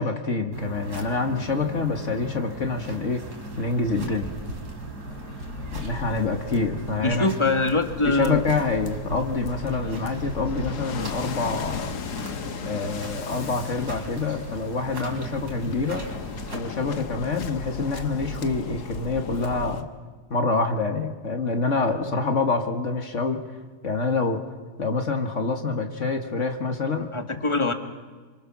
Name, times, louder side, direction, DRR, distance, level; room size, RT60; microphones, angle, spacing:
voice 1, 0.0-3.2 3.6-4.3 5.7-7.3 8.1-11.9 12.7-16.1 16.5-19.8 20.3-23.4 23.8-24.4 24.8-27.1, left 3 dB, 50° left, 5 dB, 1.9 m, -26 dB
sound 1, 0.5-16.6, right 2 dB, 90° right, 4.0 m, -38 dB
Waves surf, 5.0-19.8, left 5 dB, 85° left, 1.8 m, -37 dB
voice 2, 7.0-8.4 27.1-27.7, left 3 dB, 20° left, 6 dB, 1.6 m, -23 dB
27.0 x 25.5 x 6.0 m, 1.4 s
omnidirectional pair, 1.7 m